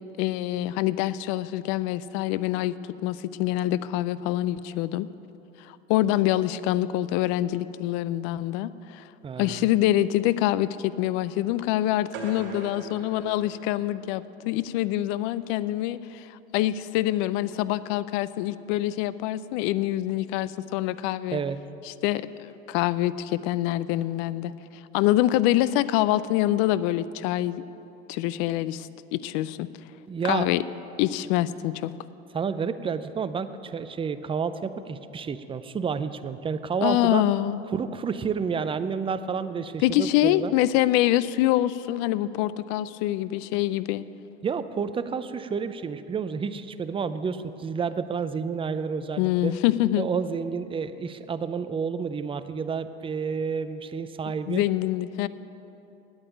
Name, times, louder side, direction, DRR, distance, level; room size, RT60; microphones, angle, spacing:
voice 1, 0.2-2.7 3.0-5.1 5.7-9.0 9.4-16.3 16.5-21.4 21.9-24.5 24.9-27.6 28.1-29.7 30.3-30.6 31.0-31.9 36.8-37.6 39.8-44.0 49.2-50.1 54.5-55.3, left 14 dB, 65° left, 17 dB, 0.5 m, -25 dB
voice 2, 9.2-9.7 21.3-21.6 30.1-30.5 32.3-37.2 37.7-40.5 44.4-49.5 50.0-54.6, right 6 dB, 15° right, 12 dB, 0.5 m, -30 dB
sound 1, 12.1-14.2, right 4 dB, 75° right, 1.8 m, -41 dB
8.9 x 8.7 x 9.2 m, 2.9 s
supercardioid pair, 100°, 33 cm